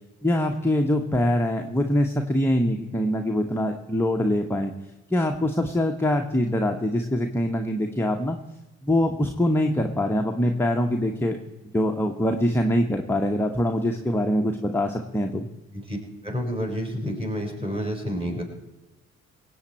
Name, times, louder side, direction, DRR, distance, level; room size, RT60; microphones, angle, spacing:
voice 1, 0.2-4.7 5.1-8.4 8.8-11.4 11.7-15.5, left 1 dB, 5° left, 3 dB, 1.3 m, -24 dB
voice 2, 16.2-18.4, equal, 15° right, 1 dB, 5.1 m, -29 dB
24.5 x 8.2 x 4.5 m, 1.0 s
figure-of-eight pair, 45°, 40 cm